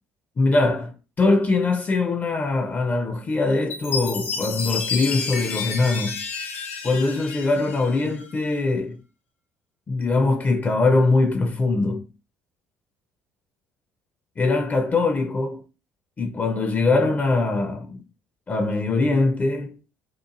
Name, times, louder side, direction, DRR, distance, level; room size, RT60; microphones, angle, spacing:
voice 1, 0.4-6.2 6.8-9.0 9.9-12.1 14.4-15.6 16.2-18.0 18.5-19.8, left 3 dB, 25° left, 0.4 m, -22 dB
Chime, 3.7-8.3, left 5 dB, 75° left, 0.6 m, -31 dB
2.9 x 2.3 x 2.4 m
figure-of-eight pair, 55°, 7 cm